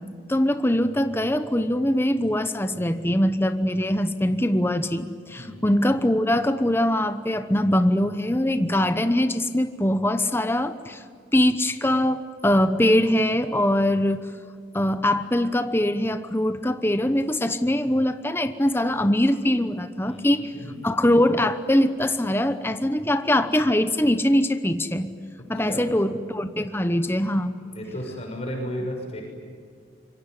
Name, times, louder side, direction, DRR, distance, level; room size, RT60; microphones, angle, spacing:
voice 1, 0.3-11.0 11.3-14.2 14.7-20.5 20.8-25.1 25.5-27.6, left 1 dB, 15° left, 9 dB, 1.0 m, -22 dB
voice 2, 20.0-20.8 25.5-25.9 27.7-29.2, equal, 35° left, 2 dB, 6.4 m, -34 dB
26.0 x 23.0 x 9.5 m, 2.1 s
head